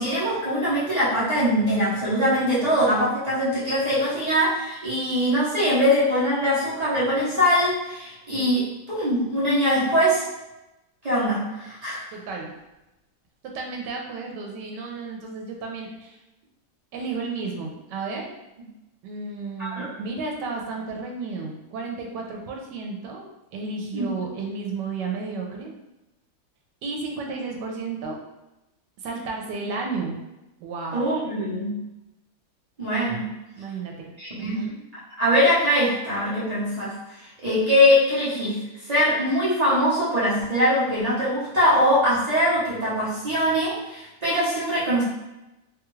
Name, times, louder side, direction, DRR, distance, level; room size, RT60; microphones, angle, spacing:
voice 1, 0.0-10.3 11.0-12.2 19.6-19.9 23.9-24.1 30.9-31.8 32.8-33.3 34.2-34.7 35.2-37.0 37.4-45.0, equal, 35° right, -9 dB, 0.7 m, -22 dB
voice 2, 12.1-12.5 13.4-16.2 16.9-18.3 19.0-23.2 23.5-25.7 26.8-28.2 29.0-30.2 30.6-31.1 33.6-34.1 34.4-34.8, right 4 dB, 85° right, 0 dB, 1.3 m, -32 dB
3.4 x 2.4 x 3.1 m, 0.98 s
omnidirectional pair, 1.8 m